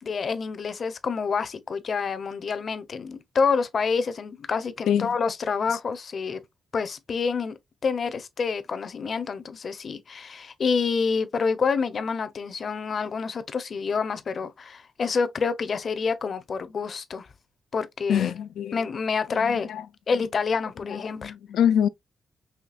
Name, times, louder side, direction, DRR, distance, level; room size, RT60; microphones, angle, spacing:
voice 1, 0.0-6.4 6.7-7.5 7.8-17.3 17.7-18.3 18.7-19.7 20.1-21.3, left 5 dB, 40° left, 0.6 m, -27 dB
voice 2, 18.1-18.8 19.3-19.9 20.9-21.9, left 9 dB, 85° left, 0.3 m, -25 dB
5.7 x 3.2 x 2.3 m
wide cardioid pair, 165°, 0 cm